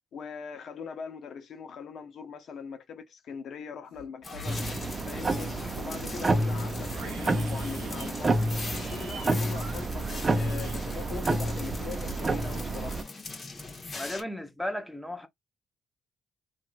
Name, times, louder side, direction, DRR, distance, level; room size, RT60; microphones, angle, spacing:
voice 1, 0.1-4.6 5.1-8.5 8.9-13.0, left 6 dB, 65° left, 0.7 m, -41 dB
Livestock farm animals working animals, 3.9-4.5 4.8-5.5 5.8-11.4 11.7-12.2, right 4 dB, 80° right, 0.8 m, -47 dB
sound 1, 4.2-14.2, left 3 dB, 35° left, 1.1 m, -41 dB
sound 2, 4.5-13.0, right 2 dB, 35° right, 0.6 m, -29 dB
voice 2, 14.0-15.3, left 1 dB, 5° left, 0.8 m, -35 dB
2.8 x 2.4 x 2.4 m
supercardioid pair, 65°, 0 cm